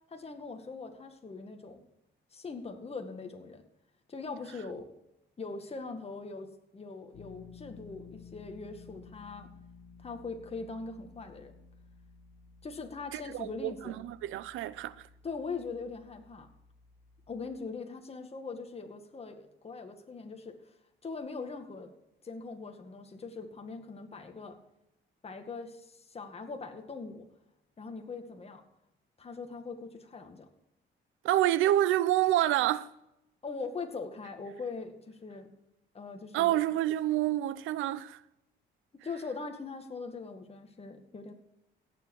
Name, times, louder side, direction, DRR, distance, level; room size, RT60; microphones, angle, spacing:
voice 1, 0.1-1.8 2.3-3.6 4.1-4.9 5.4-9.5 10.0-11.5 12.6-14.0 15.2-16.5 17.3-20.7 21.0-21.9 22.2-24.6 25.2-27.3 27.8-28.6 29.2-30.5 33.4-35.5 35.9-36.6 39.0-41.3, left 4 dB, 30° left, 1.9 m, -41 dB
sound 1, 7.1-17.6, left 5 dB, 85° left, 1.6 m, -55 dB
voice 2, 13.1-15.1 31.2-32.9 36.3-38.2, right 13 dB, 90° right, 0.6 m, -28 dB
17.0 x 7.7 x 4.8 m
cardioid pair, 90°, 20 cm